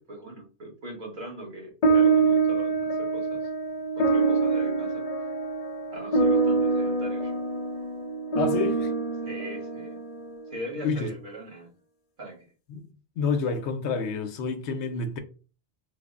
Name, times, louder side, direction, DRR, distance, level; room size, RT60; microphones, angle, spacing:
voice 1, 0.0-3.5 3.9-5.1 5.9-7.4 9.2-10.0 10.5-11.7 12.2-12.5, right 1 dB, 50° right, 1.3 m, -40 dB
sound 1, 1.8-10.5, right 4 dB, 50° left, 0.4 m, -25 dB
voice 2, 8.4-8.9 10.8-11.1 12.7-12.9 13.2-15.2, left 5 dB, 85° left, 0.9 m, -28 dB
3.4 x 2.0 x 3.6 m
omnidirectional pair, 1.1 m